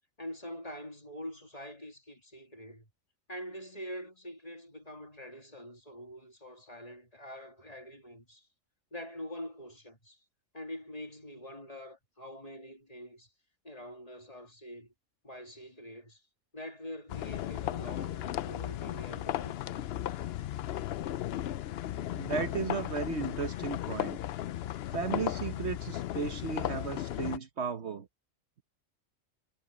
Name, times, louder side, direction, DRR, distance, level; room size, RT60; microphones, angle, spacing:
voice 1, 0.2-2.9 3.3-8.5 8.9-10.2 10.5-13.3 13.6-14.9 15.2-16.2 16.5-19.6, equal, 30° left, 2.7 m, -45 dB
sound 1, 17.1-27.4, left 12 dB, 65° left, 0.7 m, -35 dB
voice 2, 22.1-24.2 24.9-28.1, right 5 dB, 60° right, 1.3 m, -35 dB
omnidirectional pair, 1.4 m